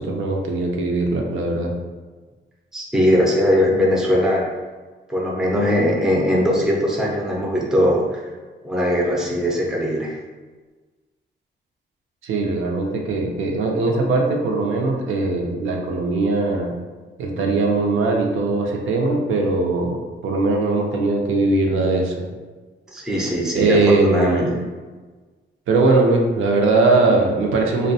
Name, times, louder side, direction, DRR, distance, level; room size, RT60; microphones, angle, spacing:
voice 1, 0.0-1.7 12.2-16.7 17.2-20.0 20.2-22.1 23.5-24.5 25.7-27.9, right 3 dB, 80° right, 1 dB, 0.5 m, -20 dB
voice 2, 2.7-4.4 5.1-8.2 8.6-10.1 22.9-24.5, equal, 5° right, -2 dB, 0.3 m, -20 dB
2.6 x 2.1 x 2.6 m, 1.3 s
wide cardioid pair, 150°, 20 cm